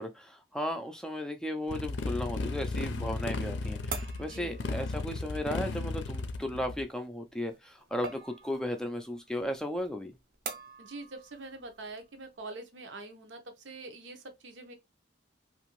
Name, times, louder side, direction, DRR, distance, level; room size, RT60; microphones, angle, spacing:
voice 1, 0.0-10.1, left 1 dB, 5° left, 0.3 m, -35 dB
sound 1, 1.6-12.4, right 4 dB, 50° right, 0.5 m, -47 dB
Motorcycle, 1.7-6.8, left 3 dB, 80° left, 0.5 m, -35 dB
voice 2, 4.2-4.6 10.8-14.7, right 2 dB, 90° right, 0.8 m, -45 dB
2.9 x 2.5 x 2.9 m
head